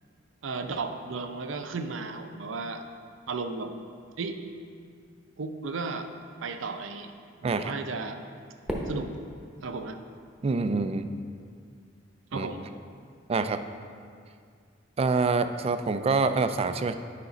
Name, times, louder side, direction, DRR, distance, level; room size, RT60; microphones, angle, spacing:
voice 1, 0.4-2.8 3.3-3.7 4.2-4.4 5.4-6.1 6.4-7.1 7.4-8.2 8.9-9.1 9.6-10.0 12.3-12.6, right 4 dB, 85° right, 7 dB, 0.6 m, -34 dB
Fireworks, 8.7-11.0, equal, 5° right, 0.9 m, -38 dB
voice 2, 10.4-11.1 12.3-12.5 13.3-13.6 15.0-16.9, right 4 dB, 30° right, 10 dB, 0.3 m, -26 dB
9.6 x 5.1 x 4.0 m, 2.2 s
head